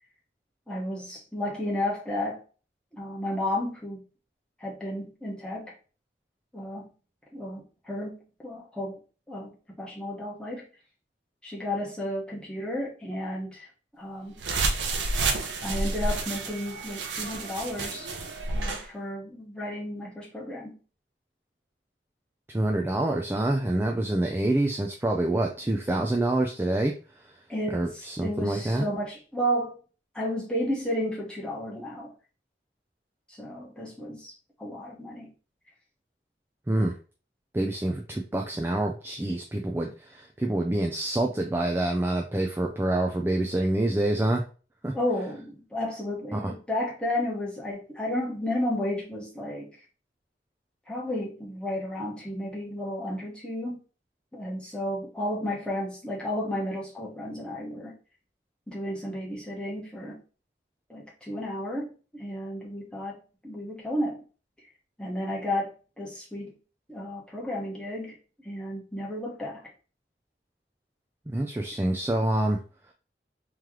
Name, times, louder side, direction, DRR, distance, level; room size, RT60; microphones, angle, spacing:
voice 1, 0.7-2.4 2.9-4.0 4.6-5.7 6.5-6.9 7.3-9.0 9.3-10.6 11.4-13.7 14.0-14.4 15.6-18.1 18.5-20.8 27.5-29.8 30.1-32.1 33.3-34.3 34.6-35.3 44.9-49.8 50.9-53.8 54.3-58.0 58.7-60.2 60.9-64.2 65.0-66.5 66.9-68.2 68.4-69.6, left 1 dB, 5° left, -4 dB, 1.1 m, -32 dB
sound 1, 14.4-18.8, right 3 dB, 85° right, 0.7 m, -30 dB
voice 2, 22.5-26.9 27.7-28.9 36.7-36.9 37.5-44.4 44.8-44.9 46.3-46.5 71.3-72.6, right 1 dB, 10° right, 2 dB, 0.3 m, -26 dB
3.1 x 3.0 x 3.6 m, 0.36 s
head